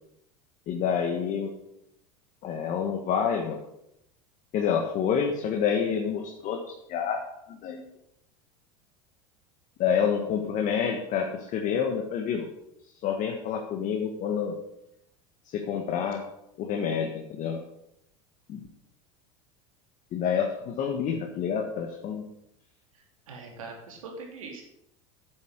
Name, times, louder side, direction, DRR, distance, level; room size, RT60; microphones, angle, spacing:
voice 1, 0.7-1.5 2.4-3.6 4.5-7.9 9.8-12.5 13.0-14.6 15.5-16.3 16.6-17.6 18.5-18.6 20.1-22.3, left 7 dB, 50° left, 3 dB, 1.6 m, -28 dB
voice 2, 23.3-24.6, right 3 dB, 85° right, 1 dB, 3.1 m, -41 dB
9.6 x 8.0 x 6.5 m, 0.81 s
hypercardioid pair, 90°, 17 cm